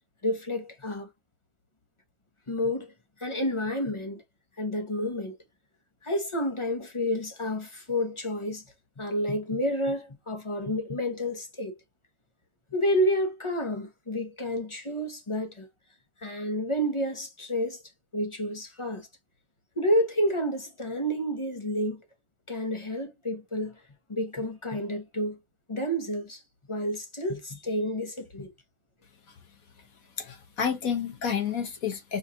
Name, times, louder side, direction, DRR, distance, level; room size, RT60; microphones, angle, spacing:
voice 1, 0.2-1.1 2.5-2.9 3.2-4.2 4.6-5.3 6.0-8.6 9.0-11.7 12.7-15.7 16.2-17.8 18.1-19.1 19.8-22.0 22.5-23.8 24.1-25.4 25.7-26.4 26.7-28.5, equal, 25° left, 0.8 m, -29 dB
voice 2, 30.2-32.2, left 7 dB, 60° left, 1.4 m, -30 dB
5.3 x 3.1 x 2.6 m
omnidirectional pair, 1.8 m